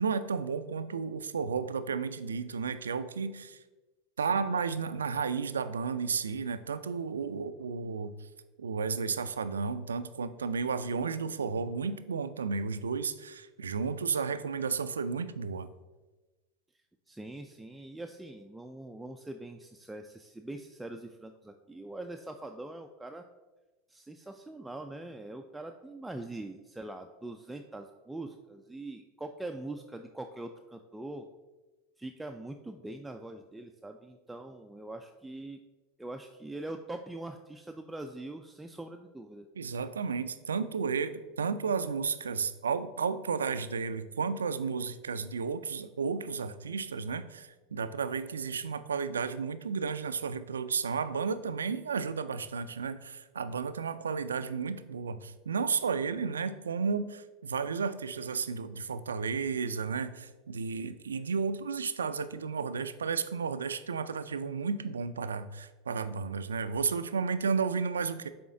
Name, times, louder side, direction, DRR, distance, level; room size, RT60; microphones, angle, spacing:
voice 1, 0.0-3.6 4.2-8.1 8.6-15.7 39.6-68.3, right 5 dB, 85° right, 12 dB, 0.3 m, -33 dB
voice 2, 17.1-23.2 23.9-31.3 32.0-35.6 36.0-39.5, right 2 dB, 5° right, 5 dB, 0.4 m, -43 dB
6.9 x 4.2 x 3.7 m, 1.2 s
hypercardioid pair, 85°, 0 cm